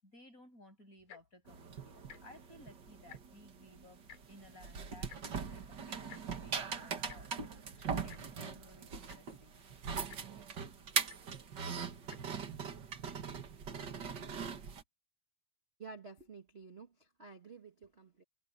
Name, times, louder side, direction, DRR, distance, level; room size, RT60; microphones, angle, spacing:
voice 1, 0.0-4.0 4.3-7.3 7.8-9.6, left 1 dB, 20° left, 7.3 m, -58 dB
Tick-tock, 1.0-1.4 2.0-2.2 2.5-2.6 2.9-3.5 4.1-4.2 5.1-5.2 6.1-6.2 7.1-7.2 8.1-8.2 8.8-8.9 9.1-9.4 10.1-10.2 11.1-11.2 12.0-12.2 12.9-13.0, left 9 dB, 75° left, 4.0 m, -53 dB
sound 1, 1.5-14.8, right 6 dB, 45° right, 1.6 m, -41 dB
voice 2, 15.8-18.2, right 4 dB, 85° right, 0.5 m, -51 dB
omnidirectional pair, 4.0 m